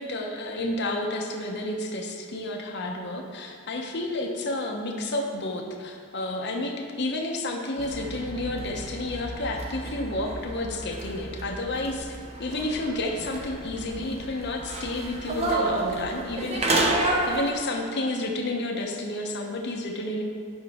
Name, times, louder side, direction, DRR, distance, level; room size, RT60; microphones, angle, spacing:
voice 1, 0.0-20.2, left 2 dB, 50° left, 2 dB, 0.9 m, -31 dB
sound 1, 7.8-17.5, right 2 dB, 30° right, 0.7 m, -30 dB
8.9 x 6.3 x 3.6 m, 2.5 s
head